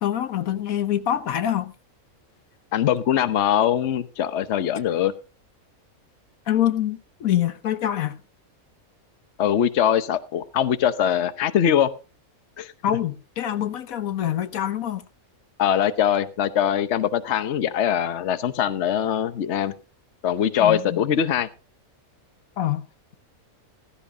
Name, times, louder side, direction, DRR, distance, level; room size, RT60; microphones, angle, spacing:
voice 1, 0.0-1.7 6.5-8.2 12.8-15.0 20.6-21.0 22.6-22.9, left 11 dB, 75° left, 1.2 m, -25 dB
voice 2, 2.7-5.1 9.4-11.9 12.6-12.7 15.6-19.7 20.2-21.5, left 9 dB, 55° left, 1.1 m, -22 dB
15.5 x 15.0 x 2.8 m
omnidirectional pair, 1.5 m